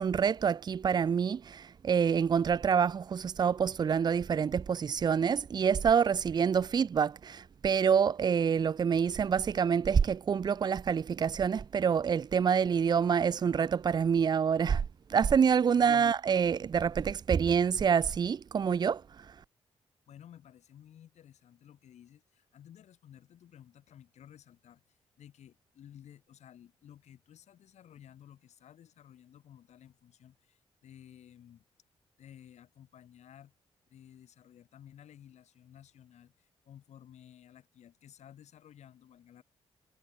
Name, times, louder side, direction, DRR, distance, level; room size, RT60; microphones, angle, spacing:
voice 1, 0.0-14.8 15.1-19.0, right 7 dB, 40° right, 0.4 m, -27 dB
voice 2, 15.7-16.1 20.1-31.6 32.2-33.5 33.9-39.4, left 10 dB, 85° left, 3.5 m, -55 dB
cardioid pair, 85°, 11 cm